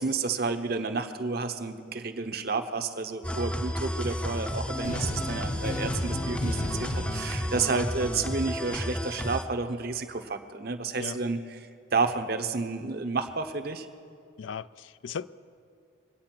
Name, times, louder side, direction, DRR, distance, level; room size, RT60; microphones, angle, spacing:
voice 1, 0.0-13.9, right 4 dB, 55° right, 8 dB, 0.9 m, -31 dB
sound 1, 3.2-9.4, equal, 5° left, 0.6 m, -32 dB
sound 2, 4.8-8.8, left 1 dB, 40° left, 0.8 m, -36 dB
voice 2, 14.4-15.3, left 6 dB, 75° left, 16 dB, 0.4 m, -37 dB
23.5 x 8.9 x 6.0 m, 2.4 s
head